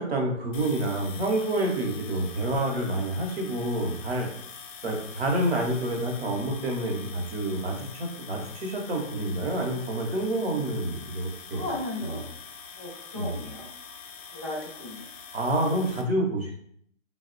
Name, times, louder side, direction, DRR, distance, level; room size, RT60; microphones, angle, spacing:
voice 1, 0.0-4.3 4.8-11.7 12.0-12.1 13.1-13.4 15.3-16.5, right 1 dB, 55° right, 1 dB, 0.8 m, -28 dB
sound 1, 0.5-16.0, left 6 dB, 75° left, 0.5 m, -44 dB
voice 2, 11.5-12.2 12.7-13.7 14.3-15.1, left 2 dB, 20° right, -7 dB, 0.5 m, -35 dB
3.6 x 2.0 x 2.5 m, 0.67 s
hypercardioid pair, 165°, 38 cm